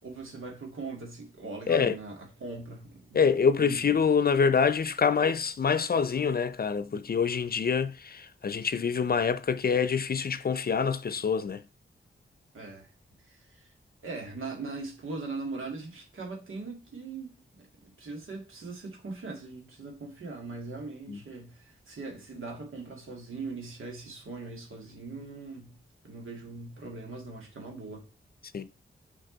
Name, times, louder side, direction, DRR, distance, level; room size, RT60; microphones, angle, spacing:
voice 1, 0.0-3.8 12.5-12.9 13.2-13.7 14.0-25.8 26.0-28.1, right 3 dB, 85° right, 2.3 m, -40 dB
voice 2, 3.1-11.6 21.1-21.2 28.5-28.7, left 6 dB, 50° left, 0.5 m, -26 dB
6.4 x 5.2 x 3.9 m
wide cardioid pair, 95°, 20 cm